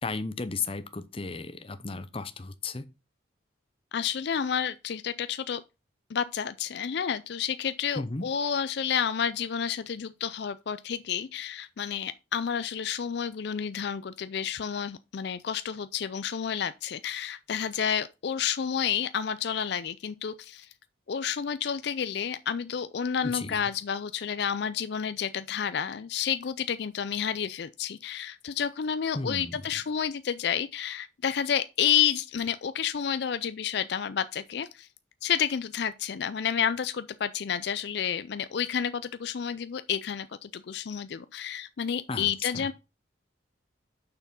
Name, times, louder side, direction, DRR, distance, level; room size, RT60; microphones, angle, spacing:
voice 1, 0.0-2.8 7.9-8.3 23.2-23.6 29.1-29.6 42.1-42.7, left 4 dB, 30° left, 0.7 m, -34 dB
voice 2, 3.9-5.6 6.1-20.7 21.1-34.9 35.2-42.7, left 8 dB, 60° left, 0.4 m, -30 dB
6.7 x 6.0 x 5.5 m
head